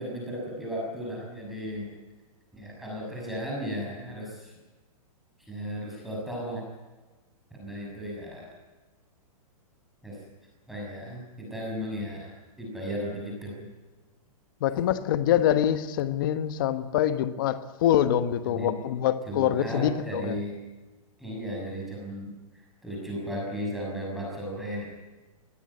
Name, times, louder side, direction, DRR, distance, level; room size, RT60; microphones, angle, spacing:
voice 1, 0.0-1.9 2.5-4.5 5.5-6.7 7.6-8.4 10.0-10.2 10.7-13.7 18.4-18.8 19.3-20.6 21.2-24.9, equal, ahead, 6.3 m, -35 dB
voice 2, 14.6-20.4, left 11 dB, 35° left, 1.3 m, -25 dB
21.5 x 18.5 x 9.7 m
hypercardioid pair, 175°, 19 cm